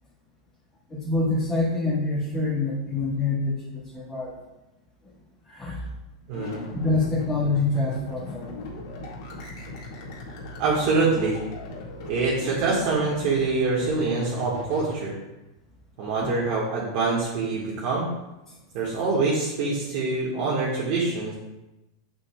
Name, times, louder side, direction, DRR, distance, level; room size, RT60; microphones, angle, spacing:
voice 1, 0.9-4.3 5.5-5.8 6.7-8.7, left 3 dB, 15° left, -8 dB, 1.6 m, -26 dB
sound 1, 6.3-15.0, left 2 dB, 65° left, 2.1 m, -38 dB
voice 2, 6.3-6.6 10.6-11.4 12.0-15.2 16.0-18.1 18.7-21.3, right 3 dB, 50° right, -6 dB, 1.7 m, -25 dB
7.5 x 7.4 x 2.4 m, 1.0 s
supercardioid pair, 145°, 2 cm